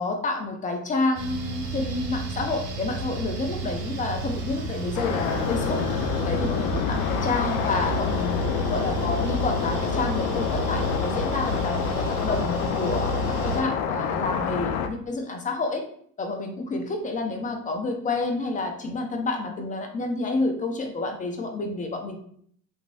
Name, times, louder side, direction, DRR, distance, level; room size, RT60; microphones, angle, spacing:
voice 1, 0.0-5.8 6.2-15.8 16.2-22.2, left 3 dB, 15° left, 4 dB, 0.5 m, -29 dB
sound 1, 1.1-13.6, right 2 dB, 65° right, 0.8 m, -31 dB
sound 2, 4.9-14.9, left 7 dB, 65° left, 0.5 m, -28 dB
2.9 x 2.5 x 2.5 m, 0.62 s
hypercardioid pair, 75°, 47 cm